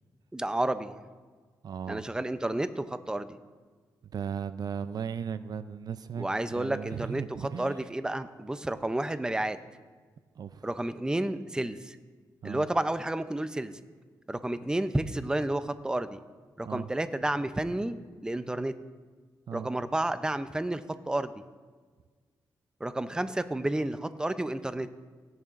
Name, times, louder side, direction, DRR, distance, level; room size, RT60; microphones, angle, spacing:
voice 1, 0.3-1.0 1.9-3.4 6.2-9.6 10.6-12.0 12.4-13.8 14.3-16.2 16.6-18.7 19.5-21.3 22.8-24.9, right 1 dB, 10° right, 11 dB, 0.5 m, -31 dB
voice 2, 1.6-2.1 4.0-7.8 10.3-10.7 12.4-12.7 16.6-16.9 19.5-19.7, right 7 dB, 60° right, 13 dB, 0.4 m, -37 dB
16.5 x 10.5 x 2.5 m, 1.5 s
cardioid pair, 90°, 8 cm